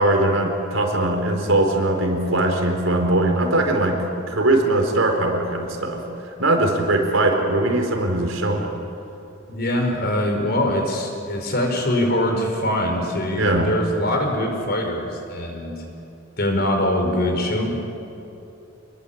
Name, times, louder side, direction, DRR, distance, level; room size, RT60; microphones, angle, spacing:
voice 1, 0.0-6.0 6.4-8.7 13.3-13.7, right 1 dB, 80° right, 3 dB, 4.3 m, -20 dB
voice 2, 9.5-15.7 16.4-18.0, left 1 dB, 50° left, 2 dB, 5.1 m, -23 dB
27.5 x 21.0 x 8.7 m, 3.0 s
head